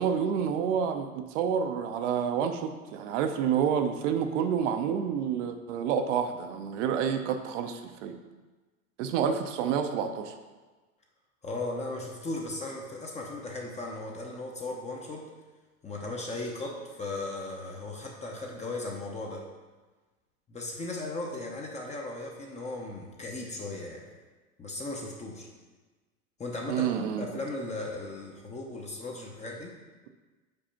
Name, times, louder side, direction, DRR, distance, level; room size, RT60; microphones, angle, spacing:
voice 1, 0.0-8.1 9.0-10.3 26.7-27.3, right 7 dB, 55° right, 7 dB, 0.8 m, -29 dB
voice 2, 11.4-15.2 15.8-19.5 20.5-24.1 24.6-25.5 26.4-26.9 27.2-29.7, left 2 dB, 15° left, -1 dB, 0.8 m, -37 dB
5.3 x 4.2 x 5.7 m, 1.3 s
hypercardioid pair, 110°, 43 cm